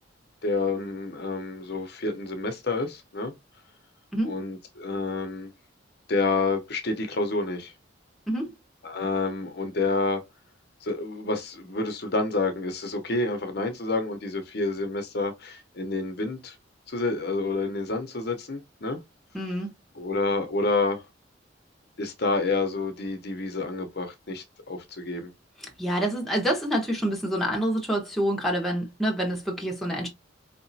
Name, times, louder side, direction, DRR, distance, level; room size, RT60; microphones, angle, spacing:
voice 1, 0.4-3.3 4.2-5.5 6.1-7.7 8.8-10.2 10.8-16.6 16.9-19.0 20.0-21.0 22.0-25.3, left 3 dB, 55° left, 0.8 m, -28 dB
voice 2, 19.3-19.7 25.8-30.1, equal, ahead, 1.2 m, -27 dB
4.8 x 2.9 x 2.7 m
head